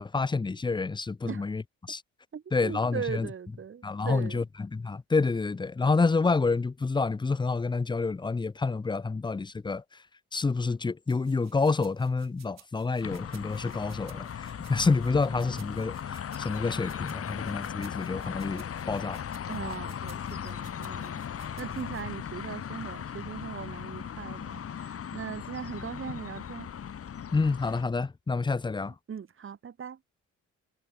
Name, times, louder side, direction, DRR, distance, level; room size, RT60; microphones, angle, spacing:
voice 1, 0.0-1.6 1.9-2.0 2.5-3.3 3.8-9.8 10.3-19.3 27.3-28.9, left 4 dB, 15° left, 0.6 m, -28 dB
voice 2, 2.3-4.4 19.5-26.7 28.9-30.0, right 7 dB, 45° right, 2.3 m, -39 dB
sound 1, 11.1-22.0, right 10 dB, 60° right, 2.8 m, -57 dB
sound 2, 13.0-27.8, left 8 dB, 50° left, 1.9 m, -38 dB
cardioid pair, 90°, 30 cm